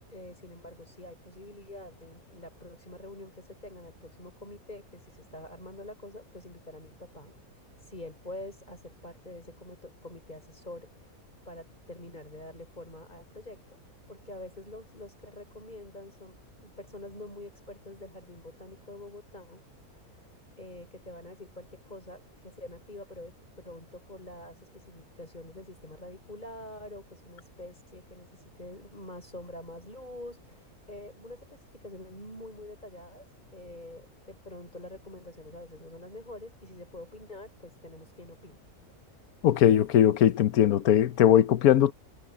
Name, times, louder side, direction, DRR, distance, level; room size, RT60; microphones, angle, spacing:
voice 1, 0.1-11.2 11.5-19.6 20.1-38.6, left 1 dB, 30° left, 5.6 m, -46 dB
voice 2, 39.4-41.9, left 10 dB, 75° left, 1.3 m, -20 dB
omnidirectional pair, 1.6 m